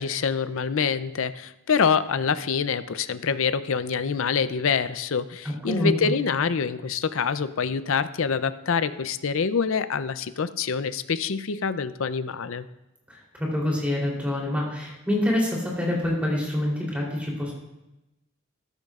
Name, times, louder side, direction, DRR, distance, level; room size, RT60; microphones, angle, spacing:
voice 1, 0.0-12.7, left 6 dB, 60° left, 13 dB, 0.5 m, -26 dB
voice 2, 5.7-6.1 13.1-17.5, left 1 dB, 5° right, -3 dB, 3.3 m, -26 dB
14.5 x 13.0 x 2.4 m, 0.95 s
head